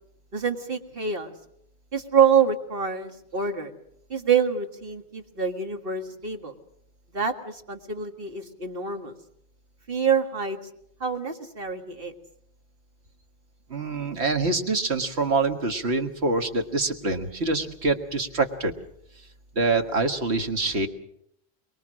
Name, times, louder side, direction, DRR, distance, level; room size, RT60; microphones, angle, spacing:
voice 1, 0.3-1.3 1.9-3.7 4.1-6.5 7.1-9.1 9.9-10.6 11.0-12.1, right 7 dB, 60° right, 5 dB, 2.0 m, -26 dB
voice 2, 13.7-18.7 19.6-20.9, right 3 dB, 75° right, 6 dB, 1.9 m, -25 dB
24.0 x 22.0 x 6.3 m, 0.72 s
omnidirectional pair, 1.1 m